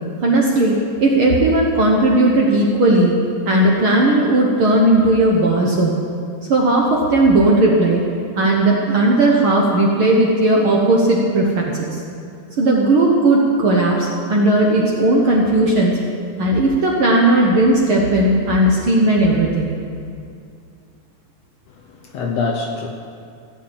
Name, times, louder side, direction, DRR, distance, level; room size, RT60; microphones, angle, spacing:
voice 1, 0.2-3.1 3.4-5.9 6.5-8.0 8.3-12.0 12.6-16.0 16.4-19.7, right 2 dB, 60° right, -2 dB, 1.5 m, -16 dB
voice 2, 21.7-22.9, left 4 dB, 70° left, 2 dB, 1.7 m, -25 dB
16.0 x 6.5 x 8.6 m, 2.4 s
omnidirectional pair, 3.7 m